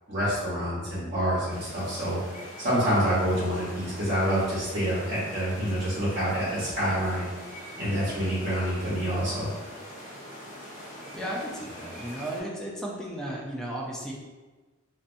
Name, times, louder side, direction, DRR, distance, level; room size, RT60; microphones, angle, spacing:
voice 1, 0.1-7.3 7.8-9.5, equal, 45° right, -10 dB, 1.1 m, -27 dB
sound 1, 1.5-12.4, equal, 40° left, 0.8 m, -43 dB
voice 2, 11.1-14.1, right 1 dB, 5° left, -4 dB, 0.5 m, -34 dB
3.2 x 2.7 x 2.6 m, 1.3 s
head